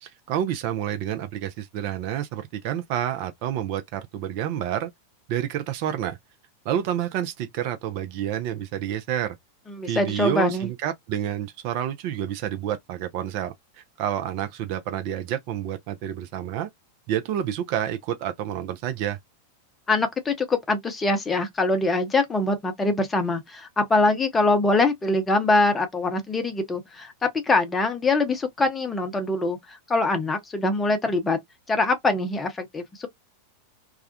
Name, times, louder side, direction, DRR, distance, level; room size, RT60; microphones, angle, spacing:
voice 1, 0.0-4.9 5.3-6.2 6.7-9.4 9.8-16.7 17.1-19.2, right 10 dB, 45° right, 0.4 m, -29 dB
voice 2, 9.7-10.7 19.9-31.4 31.7-33.1, left 2 dB, 15° left, 0.7 m, -23 dB
2.3 x 2.1 x 2.6 m
figure-of-eight pair, 90°, 0 cm